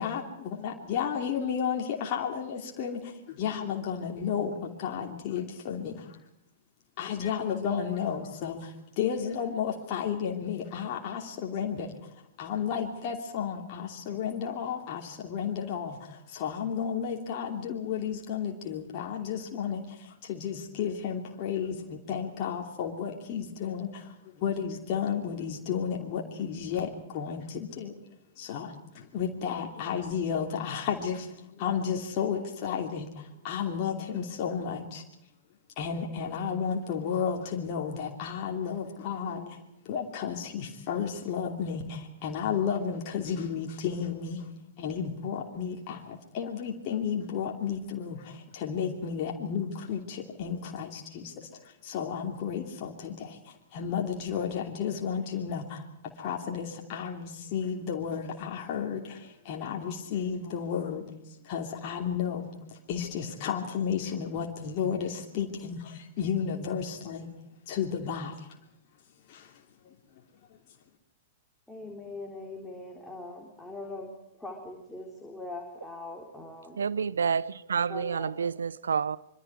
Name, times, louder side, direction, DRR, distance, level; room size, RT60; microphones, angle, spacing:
voice 1, 0.0-6.2 7.0-11.9 12.4-28.0 28.4-35.0 35.8-39.6 39.8-44.5 44.8-61.1 61.4-67.3 67.7-68.4 69.3-69.5, left 7 dB, 40° left, 2.9 m, -33 dB
voice 2, 71.7-74.1 74.4-76.8 77.9-78.5, left 2 dB, 5° left, 3.9 m, -41 dB
voice 3, 76.8-79.2, right 6 dB, 70° right, 0.7 m, -29 dB
26.0 x 24.0 x 4.8 m
figure-of-eight pair, 100°, 0 cm